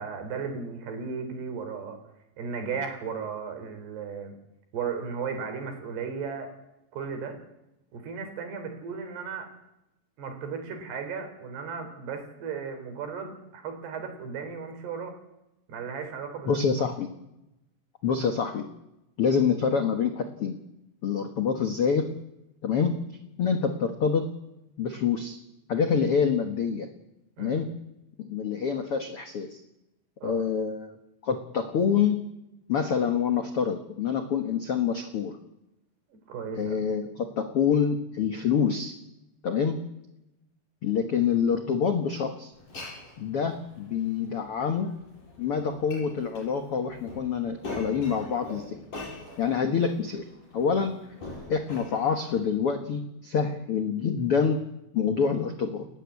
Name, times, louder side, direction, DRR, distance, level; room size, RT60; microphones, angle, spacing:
voice 1, 0.0-2.0 2.4-4.3 4.7-6.5 6.9-7.4 7.9-9.5 10.2-15.2 15.7-16.9 27.4-27.6 30.2-30.4 36.1-36.8, right 5 dB, 70° right, 6 dB, 5.7 m, -35 dB
voice 2, 16.5-17.1 18.0-18.7 19.2-20.6 21.0-22.1 22.6-23.0 23.4-24.3 24.8-25.4 25.7-26.9 27.4-27.7 28.2-29.6 30.2-31.0 31.2-32.2 32.7-35.4 36.6-38.9 39.4-39.8 40.8-42.5 43.2-44.9 45.4-48.8 49.4-50.3 50.5-51.0 51.5-54.7 54.9-55.9, left 6 dB, 80° left, 6 dB, 1.3 m, -26 dB
Glass, 42.5-52.5, left 2 dB, 50° left, 9.4 m, -44 dB
29.5 x 13.5 x 8.4 m, 0.90 s
omnidirectional pair, 4.8 m